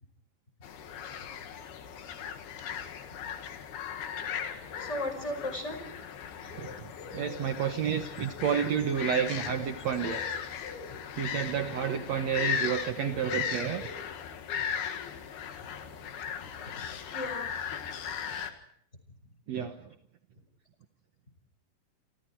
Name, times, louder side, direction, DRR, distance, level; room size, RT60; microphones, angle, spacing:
sound 1, 0.6-18.5, left 8 dB, 65° left, 3.6 m, -37 dB
voice 1, 4.8-5.8 15.6-15.7 16.6-17.6, left 1 dB, 15° left, 7 dB, 5.1 m, -36 dB
voice 2, 6.4-10.2 11.2-13.9 19.5-19.8, right 8 dB, 80° right, 6 dB, 1.5 m, -30 dB
28.5 x 27.0 x 4.6 m, 0.65 s
omnidirectional pair, 4.9 m